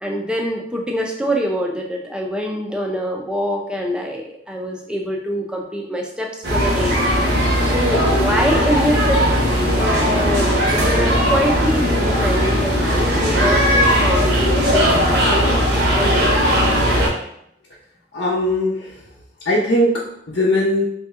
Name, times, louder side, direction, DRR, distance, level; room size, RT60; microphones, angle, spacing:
voice 1, 0.0-7.0 7.6-9.2 9.7-13.7 14.0-16.5, equal, 5° right, 0 dB, 0.4 m, -24 dB
sound 1, 6.4-17.1, equal, 65° right, 1.1 m, -17 dB
voice 2, 18.1-18.9 19.5-20.9, left 1 dB, 80° left, -7 dB, 0.7 m, -19 dB
3.2 x 2.7 x 3.5 m, 0.74 s
head